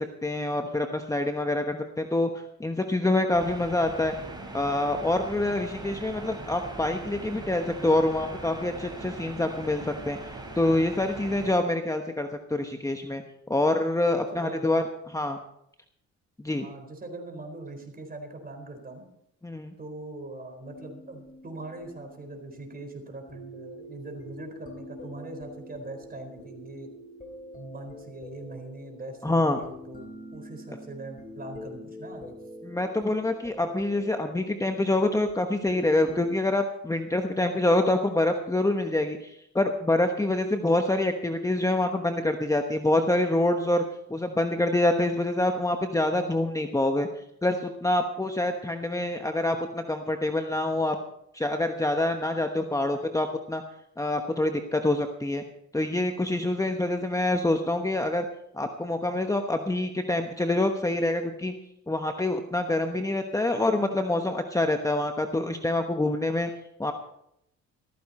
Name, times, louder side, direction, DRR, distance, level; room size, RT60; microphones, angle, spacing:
voice 1, 0.0-2.3 2.6-4.1 4.5-13.2 13.5-14.8 15.1-15.4 16.4-16.7 19.4-19.7 29.2-29.6 32.6-43.8 44.1-47.1 47.4-51.0 51.3-53.6 54.0-55.4 55.7-58.2 58.5-61.5 61.9-66.5 66.8-66.9, left 2 dB, 10° left, 5 dB, 1.1 m, -26 dB
sound 1, 3.3-11.5, right 2 dB, 15° right, 5.2 m, -40 dB
voice 2, 14.2-14.9 16.5-19.0 19.8-26.9 27.5-32.3, right 2 dB, 30° right, 5 dB, 4.3 m, -41 dB
sound 2, 20.6-36.2, left 1 dB, 25° left, 3.8 m, -46 dB
14.5 x 14.0 x 4.3 m, 0.76 s
cardioid pair, 90°, 30 cm